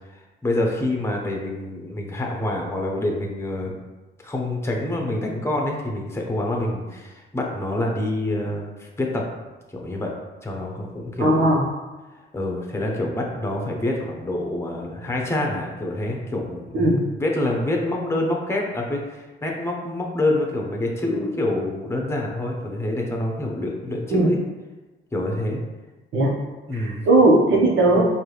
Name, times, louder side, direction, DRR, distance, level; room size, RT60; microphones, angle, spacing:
voice 1, 0.1-3.7 4.2-9.3 9.7-10.1 10.4-11.5 12.1-24.4 25.1-25.6 26.7-27.0, left 1 dB, 15° left, 0 dB, 0.9 m, -26 dB
voice 2, 11.2-11.6 16.7-16.9 24.1-24.3 26.1-26.3 26.7-28.0, right 2 dB, 75° right, -3 dB, 1.3 m, -17 dB
4.6 x 2.7 x 3.3 m, 1.1 s
cardioid pair, 90°, 20 cm